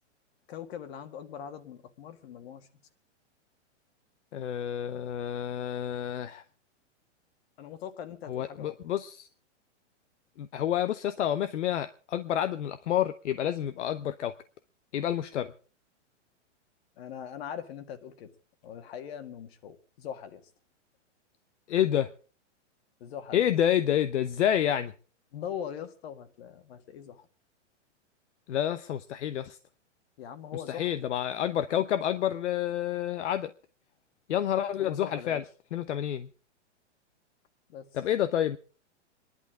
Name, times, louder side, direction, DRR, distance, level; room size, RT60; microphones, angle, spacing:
voice 1, 0.5-2.7 7.6-8.8 17.0-18.3 18.6-20.4 23.0-23.5 25.3-27.3 30.2-30.9 34.8-35.4 37.7-37.9, left 9 dB, 55° left, 9 dB, 2.0 m, -41 dB
voice 2, 4.3-6.4 8.3-9.3 10.4-14.3 14.9-15.5 21.7-22.1 23.3-24.9 28.5-29.6 30.5-33.5 34.3-35.4 35.7-36.3 37.9-38.6, left 10 dB, 75° left, 10 dB, 0.9 m, -29 dB
28.5 x 11.0 x 3.7 m, 0.37 s
hypercardioid pair, 145°, 36 cm